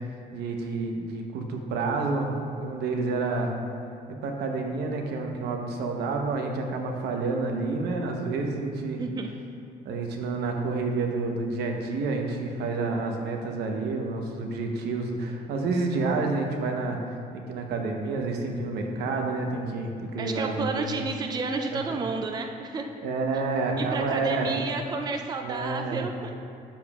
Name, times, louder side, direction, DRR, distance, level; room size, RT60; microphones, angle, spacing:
voice 1, 0.3-3.5 4.1-9.0 9.8-17.2 17.5-20.9 21.7-22.0 23.0-24.5 25.4-26.0, right 3 dB, 75° right, 2 dB, 0.9 m, -29 dB
voice 2, 9.0-9.3 20.2-22.8 23.8-26.3, right 4 dB, 25° right, 4 dB, 0.4 m, -31 dB
9.3 x 7.1 x 2.4 m, 2.6 s
cardioid pair, 110°, 17 cm